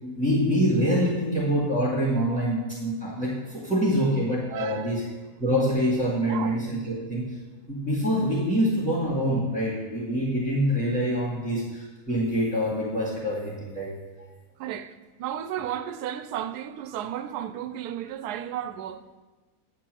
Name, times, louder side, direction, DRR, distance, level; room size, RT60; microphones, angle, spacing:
voice 1, 0.0-5.0 5.4-7.2 7.7-13.9, equal, 5° right, 2.0 m, -25 dB
voice 2, 4.5-5.0 6.3-6.6 14.6-19.2, right 10 dB, 85° right, 1.1 m, -34 dB
9.2 x 4.5 x 7.6 m
omnidirectional pair, 1.6 m